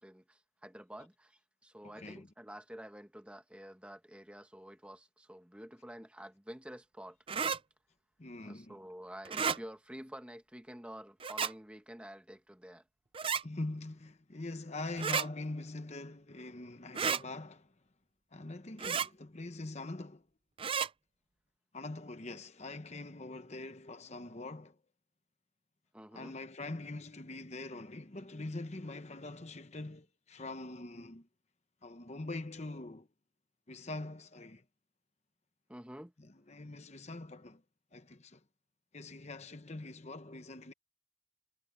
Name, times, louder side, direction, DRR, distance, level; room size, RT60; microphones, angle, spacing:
voice 1, 0.0-7.2 8.4-12.8 25.9-26.4 35.7-36.1, equal, 5° right, 1.1 m, -49 dB
voice 2, 1.8-2.3 8.2-8.8 13.4-17.7 18.3-20.3 21.7-24.8 26.1-31.3 31.8-33.1 33.7-34.6 36.2-37.6 37.9-38.4 38.9-40.7, left 2 dB, 30° left, 0.9 m, -43 dB
sound 1, 7.3-7.6 9.2-9.6 11.2-11.5 13.1-13.4 15.0-15.3 16.9-17.2 18.8-19.1 20.6-20.9, right 6 dB, 25° right, 0.4 m, -32 dB
head